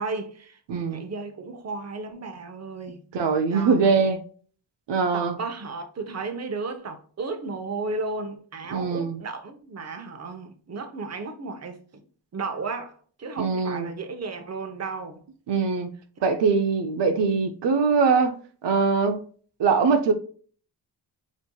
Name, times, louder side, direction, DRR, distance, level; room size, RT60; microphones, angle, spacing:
voice 1, 0.0-3.0 3.5-4.1 5.1-11.8 12.3-15.2 16.2-16.3, right 3 dB, 40° right, 0.8 m, -34 dB
voice 2, 0.7-1.0 3.1-4.2 4.9-5.4 8.7-9.2 13.4-13.9 15.5-15.9 16.2-19.2 19.6-20.1, right 5 dB, 80° right, 0.7 m, -22 dB
4.5 x 4.2 x 2.3 m
wide cardioid pair, 150°, 42 cm